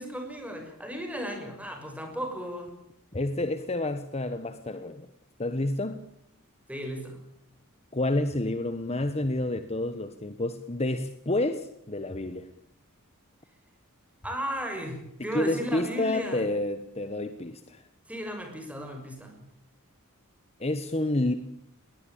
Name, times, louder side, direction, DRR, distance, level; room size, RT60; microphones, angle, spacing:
voice 1, 0.0-2.7 6.7-7.2 14.2-16.4 18.1-19.4, equal, 5° right, 6.4 m, -35 dB
voice 2, 3.1-5.1 5.4-6.0 7.9-12.5 15.2-17.8 20.6-21.3, left 2 dB, 30° left, 1.3 m, -29 dB
21.5 x 18.0 x 8.7 m
head